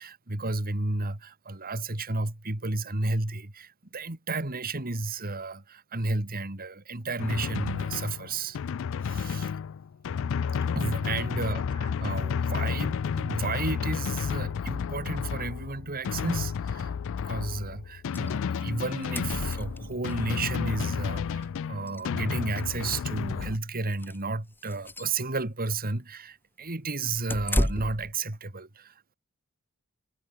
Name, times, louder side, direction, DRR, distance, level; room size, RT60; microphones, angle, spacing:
voice 1, 0.0-8.6 9.0-9.5 10.7-16.9 17.2-29.2, right 3 dB, 45° right, 2.3 m, -32 dB
Drum, 7.2-23.6, left 6 dB, 60° left, 0.4 m, -31 dB
sound 1, 18.1-18.3 18.6-18.7 18.9-20.2 21.4-21.5 21.9-22.0 22.5-23.5 23.9-24.2 24.6-25.2 27.3-28.1, left 1 dB, 10° left, 1.0 m, -32 dB
head